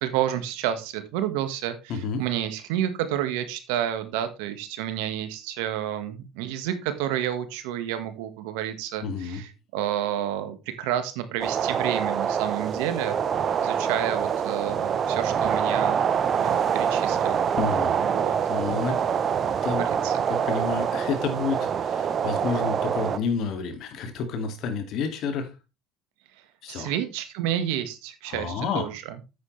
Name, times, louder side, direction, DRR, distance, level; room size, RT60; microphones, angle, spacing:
voice 1, 0.0-13.2 13.6-16.0 16.4-17.4 18.0-18.3 19.8-20.2 26.7-29.2, right 11 dB, 80° right, 9 dB, 1.6 m, -30 dB
voice 2, 1.9-2.2 9.0-9.4 17.6-18.0 18.5-19.0 19.6-19.8 20.3-25.5 26.6-26.9 28.3-28.9, left 5 dB, 60° left, 7 dB, 2.4 m, -30 dB
sound 1, 11.4-23.2, right 7 dB, 40° right, 0.9 m, -25 dB
9.4 x 8.5 x 3.3 m, 0.28 s
supercardioid pair, 90°, 0 cm